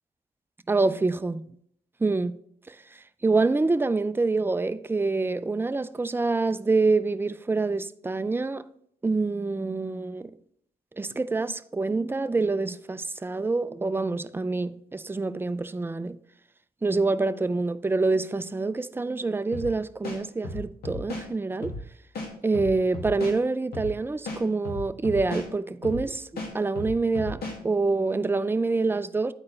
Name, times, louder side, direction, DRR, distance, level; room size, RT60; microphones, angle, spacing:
voice 1, 0.7-1.4 2.0-2.3 2.7-8.6 9.0-10.3 11.0-16.2 16.8-21.7 22.4-27.4 27.6-29.3, right 3 dB, 15° right, 0.4 m, -26 dB
sound 1, 19.5-19.7 20.0-21.2 21.6-21.8 22.1-23.4 23.7-23.9 24.2-25.5 25.8-26.0 26.4-27.6, left 2 dB, 75° left, 1.8 m, -34 dB
9.6 x 4.3 x 3.3 m
cardioid pair, 60°, 16 cm